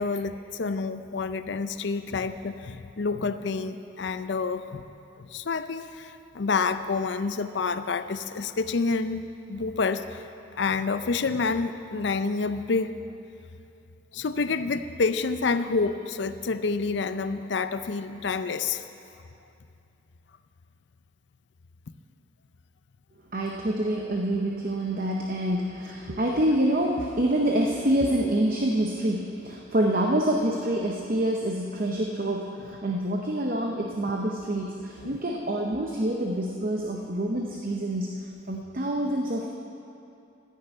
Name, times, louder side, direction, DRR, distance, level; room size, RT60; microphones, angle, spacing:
voice 1, 0.0-4.8 5.2-10.3 10.6-12.9 14.1-18.8 35.0-35.1, left 4 dB, 65° left, 11 dB, 0.5 m, -28 dB
voice 2, 23.3-39.5, right 1 dB, 45° right, 1 dB, 0.8 m, -27 dB
13.5 x 6.7 x 8.9 m, 2.6 s
head